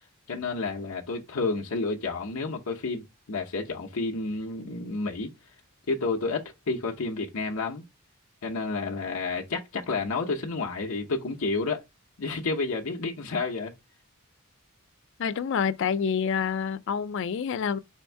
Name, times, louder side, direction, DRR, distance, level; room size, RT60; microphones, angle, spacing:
voice 1, 0.3-3.0 3.3-5.3 5.9-7.8 8.4-11.8 12.2-13.7, left 3 dB, 70° left, 0.8 m, -30 dB
voice 2, 15.2-17.8, left 7 dB, 55° left, 0.4 m, -27 dB
4.5 x 2.6 x 4.4 m
head